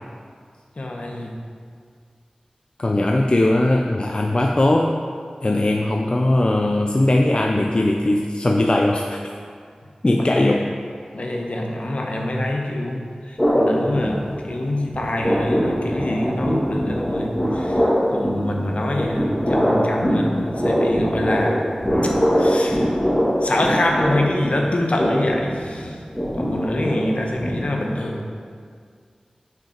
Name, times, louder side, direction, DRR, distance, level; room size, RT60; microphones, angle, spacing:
voice 1, 0.8-1.3 10.1-10.5 11.1-17.8 18.1-21.6 22.0-22.1 22.4-22.9 23.4-25.9 26.3-28.3, left 1 dB, 60° left, 0 dB, 0.9 m, -25 dB
voice 2, 2.8-5.0 5.4-9.2 10.0-10.6, left 1 dB, 45° left, 2 dB, 0.4 m, -19 dB
sound 1, 13.4-14.6 14.9-28.0, equal, 25° left, 1.7 m, -22 dB
5.8 x 5.6 x 4.4 m, 2.1 s
wide cardioid pair, 55°, 2 cm